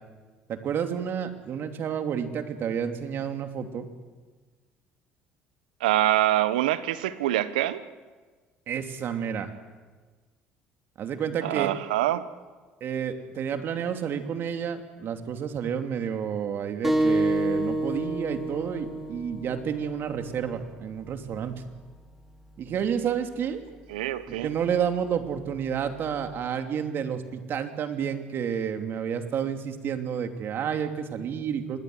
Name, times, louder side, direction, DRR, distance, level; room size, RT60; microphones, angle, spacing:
voice 1, 0.5-3.9 8.7-9.5 11.0-11.7 12.8-21.5 22.6-23.6 24.3-31.8, right 8 dB, 55° right, 6 dB, 2.9 m, -30 dB
voice 2, 5.8-7.8 11.4-12.3 23.9-24.5, right 14 dB, 85° right, 14 dB, 1.2 m, -25 dB
sound 1, 16.8-22.0, right 1 dB, 5° right, 5.2 m, -29 dB
26.0 x 20.5 x 8.0 m, 1.4 s
hypercardioid pair, 65°, 5 cm